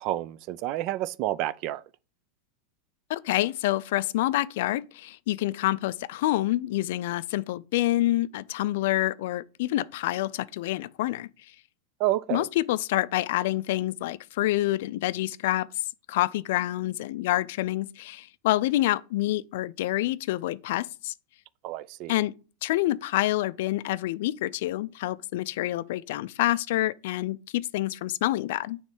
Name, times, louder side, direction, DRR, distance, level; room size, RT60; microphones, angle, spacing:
voice 1, 0.0-1.8 12.0-12.5 21.6-22.2, right 15 dB, 45° right, 0.3 m, -29 dB
voice 2, 3.1-11.3 12.3-15.7 16.1-21.1 22.1-22.3 22.6-28.8, left 16 dB, 70° left, 0.3 m, -27 dB
6.2 x 3.1 x 5.7 m
supercardioid pair, 140°, 0 cm